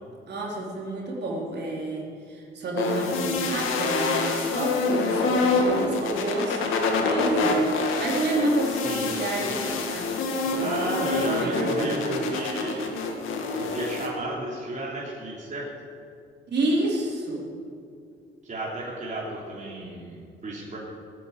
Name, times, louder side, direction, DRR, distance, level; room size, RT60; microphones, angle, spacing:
voice 1, 0.3-7.7 8.0-12.0 16.5-17.4, right 1 dB, 60° right, -2 dB, 4.4 m, -30 dB
sound 1, 2.8-14.1, left 3 dB, 85° left, 2.1 m, -26 dB
voice 2, 8.7-9.1 10.6-13.0 13.5-15.7 18.4-20.8, right 2 dB, 40° right, -4 dB, 3.6 m, -32 dB
18.0 x 9.5 x 8.4 m, 2.3 s
cardioid pair, 90°, 20 cm